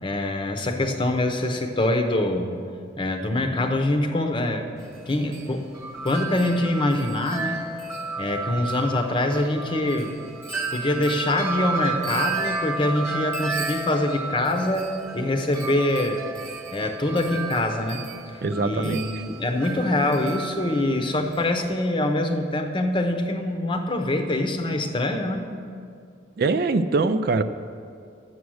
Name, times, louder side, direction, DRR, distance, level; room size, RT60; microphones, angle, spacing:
voice 1, 0.0-2.6 3.0-4.7 5.1-5.7 6.0-7.6 8.2-10.1 10.7-16.2 16.7-18.0 18.3-25.4, left 1 dB, 25° left, 5 dB, 0.8 m, -24 dB
Wind chime, 4.8-21.6, right 4 dB, 15° right, 1.3 m, -33 dB
voice 2, 18.4-19.1 26.4-27.4, right 3 dB, 50° right, 10 dB, 0.4 m, -23 dB
11.5 x 8.1 x 6.3 m, 2.3 s
head